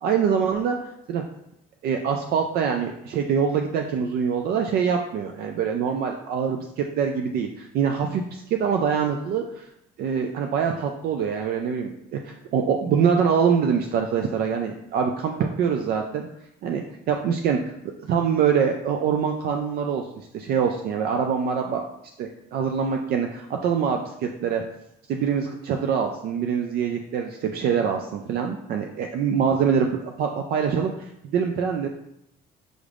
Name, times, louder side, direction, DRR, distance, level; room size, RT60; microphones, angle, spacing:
voice 1, 0.0-0.8 1.1-1.2 1.8-9.7 10.0-16.3 16.6-17.6 18.1-21.8 22.2-24.6 25.1-31.9, right 7 dB, 65° right, 3 dB, 0.4 m, -24 dB
6.3 x 3.3 x 2.4 m, 0.78 s
cardioid pair, 110°, 17 cm